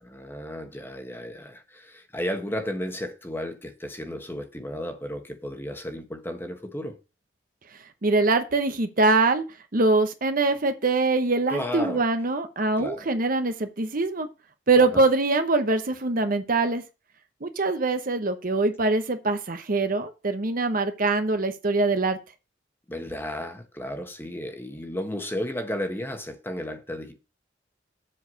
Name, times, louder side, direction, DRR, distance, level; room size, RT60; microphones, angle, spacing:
voice 1, 0.1-7.0 11.5-12.0 12.8-13.1 14.8-15.0 22.9-27.1, equal, 10° left, 1.2 m, -33 dB
voice 2, 8.0-9.4 9.7-14.3 14.7-16.8 17.4-22.2, right 3 dB, 50° right, 0.9 m, -23 dB
7.7 x 4.7 x 6.3 m
head